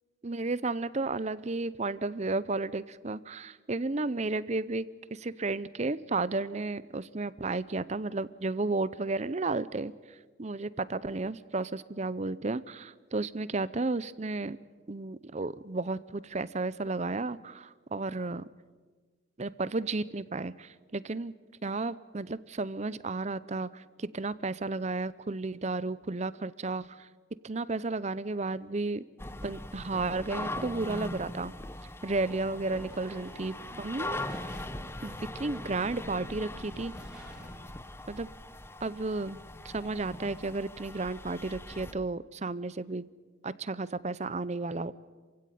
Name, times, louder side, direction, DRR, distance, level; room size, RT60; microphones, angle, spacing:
voice 1, 0.2-4.9 5.1-14.6 14.9-18.5 19.4-21.3 21.6-27.1 27.4-29.0 29.4-31.5 32.0-34.3 35.0-36.9 38.1-38.3 38.8-43.1 43.4-44.9, right 3 dB, 35° right, 17 dB, 0.7 m, -33 dB
sound 1, 29.2-41.9, left 1 dB, 10° left, 0.8 m, -41 dB
sound 2, 32.1-37.8, equal, 5° right, 3.0 m, -51 dB
27.5 x 16.0 x 9.3 m, 1.4 s
head